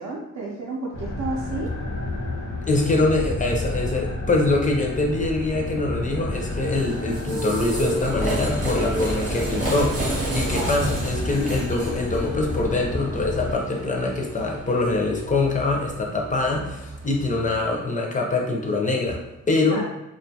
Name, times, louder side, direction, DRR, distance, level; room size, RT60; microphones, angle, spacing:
voice 1, 0.0-1.7 10.4-10.8 19.7-19.9, right 2 dB, 70° right, -4 dB, 0.5 m, -31 dB
sound 1, 0.9-13.6, left 2 dB, 90° left, 0.9 m, -31 dB
voice 2, 2.7-19.2 19.5-19.8, left 2 dB, 25° left, 0 dB, 0.4 m, -24 dB
sound 2, 6.3-17.7, right 2 dB, 25° right, 0.7 m, -31 dB
2.5 x 2.2 x 2.7 m, 0.91 s
wide cardioid pair, 150°, 29 cm